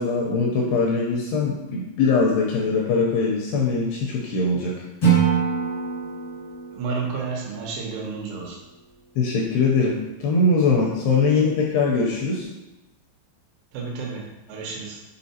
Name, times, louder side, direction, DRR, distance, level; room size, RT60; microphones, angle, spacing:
voice 1, 0.0-4.7 9.2-12.5, left 3 dB, 80° left, -2 dB, 2.4 m, -22 dB
Acoustic guitar / Strum, 5.0-8.2, right 7 dB, 60° left, 0.9 m, -25 dB
voice 2, 6.7-8.6 13.7-15.0, right 4 dB, 85° right, -2 dB, 3.6 m, -31 dB
7.4 x 4.6 x 2.8 m, 1.0 s
omnidirectional pair, 5.3 m